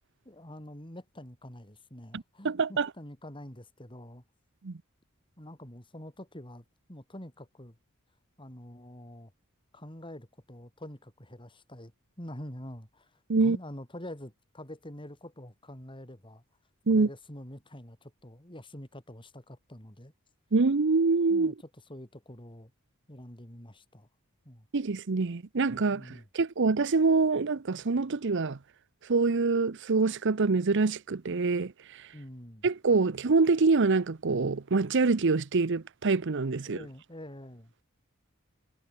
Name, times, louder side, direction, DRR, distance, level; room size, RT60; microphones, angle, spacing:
voice 1, 0.3-4.2 5.4-7.8 8.4-9.3 9.7-11.9 12.2-13.1 13.4-16.4 16.9-20.1 21.3-21.5 21.9-22.7 23.1-24.1 24.5-24.7 25.9-26.3 32.1-32.6 36.7-37.7, left 1 dB, 25° left, 5.4 m, -46 dB
voice 2, 2.1-2.9 4.6-4.8 13.3-13.6 16.9-17.1 20.5-21.5 24.7-28.6 29.1-32.1 32.6-36.8, right 4 dB, 55° right, 0.7 m, -25 dB
head